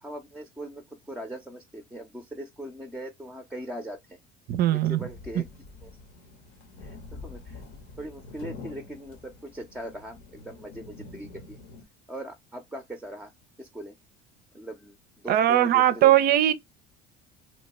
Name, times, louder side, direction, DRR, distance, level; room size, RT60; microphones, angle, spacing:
voice 1, 0.0-4.2 4.7-5.4 5.8-5.9 6.8-7.6 8.0-11.6 12.1-13.3 13.6-13.9 14.5-16.2, right 1 dB, 5° right, 0.6 m, -40 dB
voice 2, 4.5-5.1 15.3-16.5, right 12 dB, 50° right, 0.5 m, -20 dB
sound 1, 5.1-11.8, left 3 dB, 55° left, 0.9 m, -46 dB
3.0 x 2.1 x 2.9 m
supercardioid pair, 95°, 21 cm